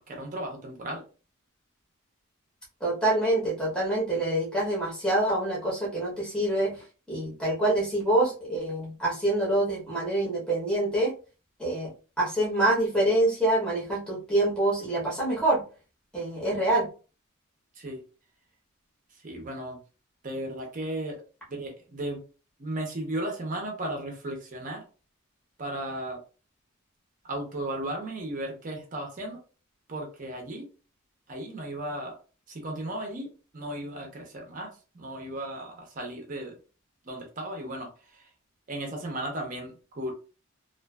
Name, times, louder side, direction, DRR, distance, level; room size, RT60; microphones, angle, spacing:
voice 1, 0.1-1.0 17.7-18.0 19.2-19.8 20.2-21.2 21.5-22.2 22.6-24.8 25.6-26.2 27.2-29.4 29.9-30.7 31.3-32.2 32.5-33.3 33.5-36.5 37.0-38.3 38.7-40.1, right 1 dB, 40° right, 1 dB, 0.6 m, -35 dB
voice 2, 2.8-6.8 7.1-11.1 11.6-11.9 12.2-15.6 16.1-16.9, right 1 dB, 5° left, -6 dB, 0.8 m, -26 dB
2.5 x 2.4 x 2.2 m, 0.35 s
head